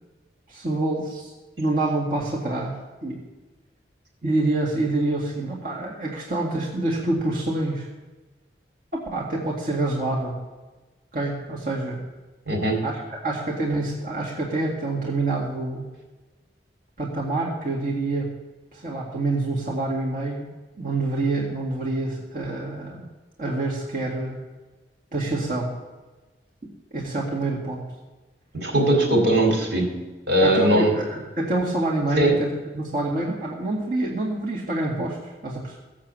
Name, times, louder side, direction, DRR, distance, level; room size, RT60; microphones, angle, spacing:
voice 1, 0.5-3.2 4.2-7.9 9.1-10.4 11.1-12.0 12.8-15.8 17.0-18.3 18.7-20.5 20.8-23.1 23.4-24.4 25.1-25.7 26.9-27.9 30.4-35.8, right 2 dB, 50° right, -4 dB, 2.1 m, -27 dB
voice 2, 12.5-12.8 28.5-29.9 30.3-30.9 32.2-32.4, right 1 dB, 80° right, 0 dB, 4.2 m, -20 dB
17.5 x 6.8 x 7.6 m, 1.2 s
head